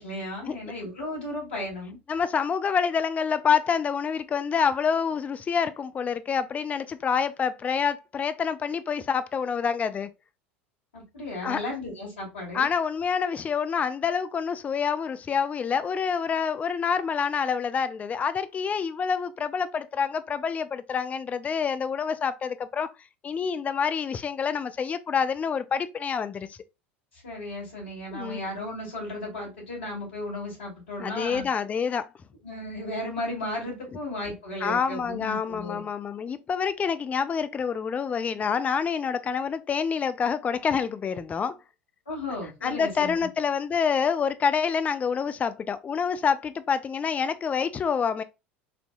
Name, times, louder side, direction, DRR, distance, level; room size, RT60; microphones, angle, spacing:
voice 1, 0.0-2.0 10.9-12.7 27.2-31.5 32.4-35.8 42.1-43.1, left 1 dB, 75° left, 2.2 m, -35 dB
voice 2, 2.1-10.1 11.4-11.6 12.5-22.9 23.2-26.6 28.1-28.4 31.0-32.1 34.6-41.6 42.6-48.2, left 6 dB, 25° left, 0.3 m, -27 dB
4.3 x 2.7 x 2.3 m
figure-of-eight pair, 75°, 6 cm